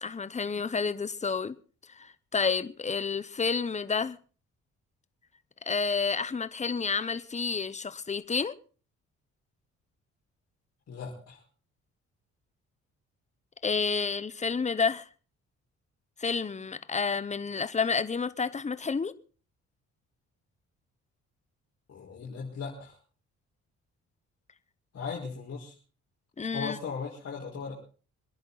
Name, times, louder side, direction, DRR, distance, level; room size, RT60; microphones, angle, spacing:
voice 1, 0.0-1.5 1.9-4.2 5.6-8.5 13.6-15.0 16.2-19.1 26.4-26.8, left 5 dB, 25° left, 1.0 m, -30 dB
voice 2, 10.9-11.4 21.9-22.9 24.9-25.7 26.5-27.7, left 5 dB, 55° left, 5.0 m, -37 dB
26.0 x 11.0 x 4.1 m
cardioid pair, 90°, 30 cm